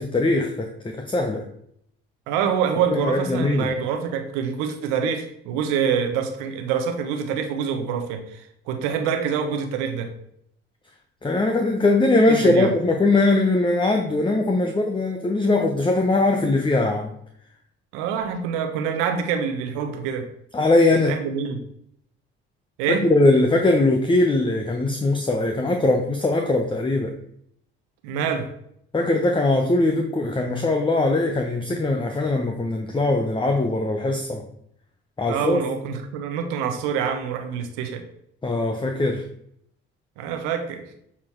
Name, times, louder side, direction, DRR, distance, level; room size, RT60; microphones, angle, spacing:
voice 1, 0.0-1.4 2.9-3.7 11.2-17.1 20.5-21.1 23.0-27.1 28.9-34.4 35.2-35.6 38.4-39.2, left 2 dB, 15° left, 4 dB, 0.9 m, -21 dB
voice 2, 2.3-10.1 12.3-12.8 17.9-20.3 20.9-21.6 22.8-23.1 28.0-28.5 35.3-38.0 40.2-40.8, right 7 dB, 80° right, 5 dB, 1.1 m, -26 dB
7.3 x 4.2 x 4.6 m, 0.72 s
hypercardioid pair, 60°, 30 cm